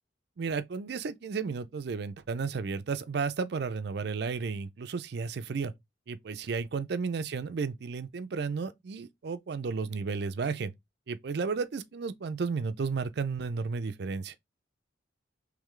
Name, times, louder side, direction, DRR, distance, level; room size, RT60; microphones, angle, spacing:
voice 1, 0.4-5.7 6.1-10.7 11.1-14.3, right 5 dB, 60° right, 0.4 m, -33 dB
3.7 x 3.2 x 3.1 m
head